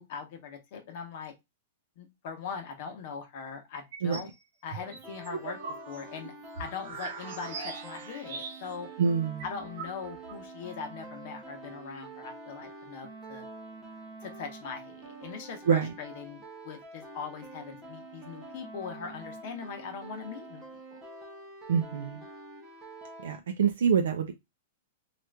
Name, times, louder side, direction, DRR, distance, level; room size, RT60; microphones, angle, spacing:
voice 1, 0.0-1.3 2.0-4.3 4.6-5.6 5.9-6.3 6.6-8.9 9.4-13.4 14.2-20.6 20.9-21.0, left 6 dB, 45° left, 0.9 m, -41 dB
sound 1, 3.7-4.3 4.7-8.9 9.1-9.2 9.4-10.4, right 4 dB, 55° right, 0.8 m, -41 dB
sound 2, 4.7-23.4, right 2 dB, 10° right, 0.8 m, -46 dB
voice 2, 9.0-9.4 15.7-15.9 21.7-22.2 23.2-24.3, right 6 dB, 85° right, 0.5 m, -26 dB
3.0 x 2.5 x 3.2 m
supercardioid pair, 170°, 0 cm